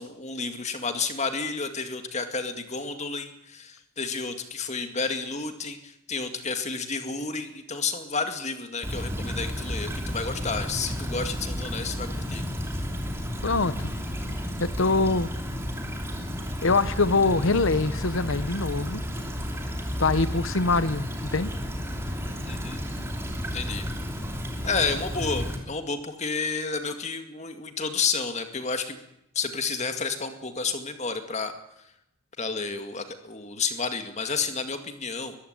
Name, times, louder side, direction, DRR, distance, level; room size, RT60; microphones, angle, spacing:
voice 1, 0.0-12.4 22.5-22.8 23.5-23.8 24.6-29.0 29.3-31.5 32.4-35.4, left 4 dB, 30° left, 8 dB, 2.1 m, -31 dB
Stream / Trickle dribble, 8.8-25.6, equal, 10° right, 2.9 m, -32 dB
voice 2, 13.4-13.9 14.6-15.3 16.6-19.0 20.0-21.5, left 3 dB, 60° left, 16 dB, 0.9 m, -24 dB
22.0 x 14.5 x 8.9 m, 0.82 s
head